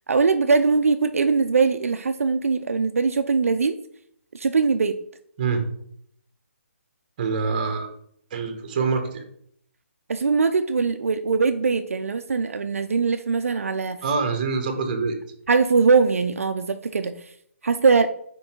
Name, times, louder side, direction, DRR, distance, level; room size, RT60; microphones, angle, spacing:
voice 1, 0.1-3.8 4.3-5.0 10.1-14.0 15.5-17.3 17.6-18.1, right 4 dB, 75° right, 8 dB, 0.5 m, -21 dB
voice 2, 7.2-7.9 8.3-9.2 14.0-15.1, right 4 dB, 35° right, 6 dB, 1.2 m, -25 dB
5.3 x 4.5 x 4.5 m, 0.68 s
hypercardioid pair, 160°, 8 cm